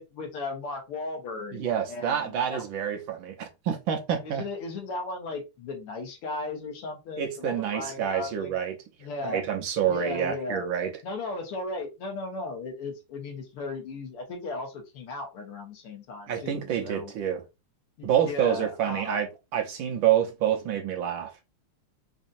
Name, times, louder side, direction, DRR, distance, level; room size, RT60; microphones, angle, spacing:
voice 1, 0.0-2.7 4.2-8.5 9.0-9.4 9.9-10.6 11.0-17.1 18.0-19.2, left 3 dB, 85° left, 2.1 m, -36 dB
voice 2, 1.5-4.4 7.2-8.7 9.2-10.9 16.3-17.4 18.0-19.3 19.5-21.3, right 9 dB, 70° right, 1.4 m, -27 dB
5.0 x 2.8 x 2.5 m
omnidirectional pair, 2.4 m